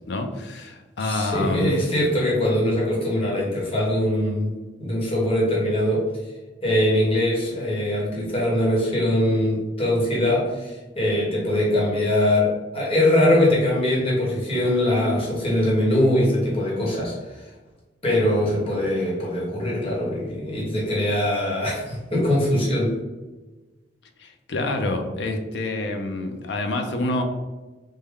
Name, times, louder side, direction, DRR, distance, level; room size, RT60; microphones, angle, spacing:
voice 1, 0.1-1.9 24.2-27.2, left 2 dB, 65° left, 4 dB, 0.5 m, -27 dB
voice 2, 1.0-6.1 6.6-17.1 18.0-23.0, left 1 dB, 30° left, -5 dB, 1.0 m, -22 dB
3.4 x 2.1 x 3.5 m, 1.2 s
head